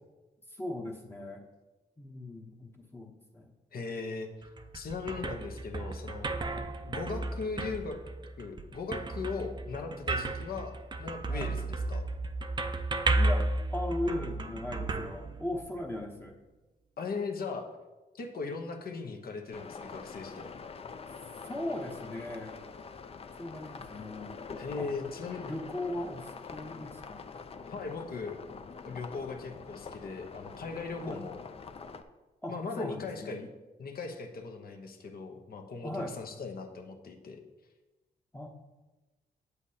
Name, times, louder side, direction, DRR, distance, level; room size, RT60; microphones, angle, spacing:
voice 1, 0.5-1.4 2.0-3.5 6.4-6.7 10.2-10.3 11.3-11.5 13.2-16.4 21.4-22.6 23.4-24.4 24.8-24.9 25.4-27.2 31.0-31.2 32.4-33.4 35.8-36.2 38.3-38.5, left 1 dB, 15° left, 0 dB, 0.8 m, -38 dB
voice 2, 3.7-4.3 4.7-6.3 6.9-8.0 8.4-12.0 17.0-17.7 18.2-20.6 24.6-25.4 27.7-28.4 28.8-31.4 32.5-33.5 33.8-37.4, left 4 dB, 65° left, 4 dB, 1.0 m, -38 dB
sound 1, 4.4-15.9, right 2 dB, 25° right, 0.5 m, -33 dB
sound 2, 19.5-32.0, left 5 dB, 35° left, 0.5 m, -45 dB
8.5 x 8.2 x 2.8 m, 1.1 s
cardioid pair, 100°, 16 cm